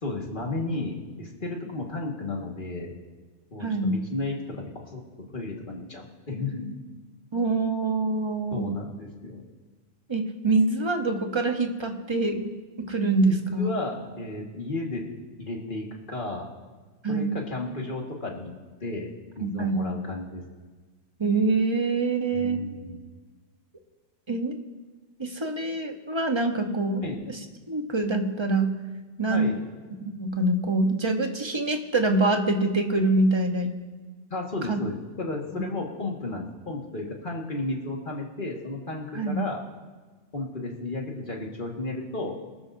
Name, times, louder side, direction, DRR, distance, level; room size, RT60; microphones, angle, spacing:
voice 1, 0.0-2.9 3.5-5.0 5.3-6.8 8.5-9.4 13.3-15.0 15.4-16.5 17.1-18.5 18.8-20.4 21.7-22.0 22.3-23.0 27.0-27.2 29.3-29.6 34.3-39.6 40.3-42.4, left 2 dB, 40° left, -1 dB, 2.0 m, -33 dB
voice 2, 3.6-4.0 7.3-8.7 10.1-13.7 17.0-17.4 19.4-19.9 21.2-22.6 24.3-24.6 25.2-27.4 27.7-28.7 29.2-29.5 30.0-33.7 34.7-34.8 35.5-35.6 39.1-39.4, right 2 dB, 25° right, 4 dB, 1.0 m, -25 dB
24.0 x 13.0 x 2.7 m, 1.4 s
omnidirectional pair, 1.3 m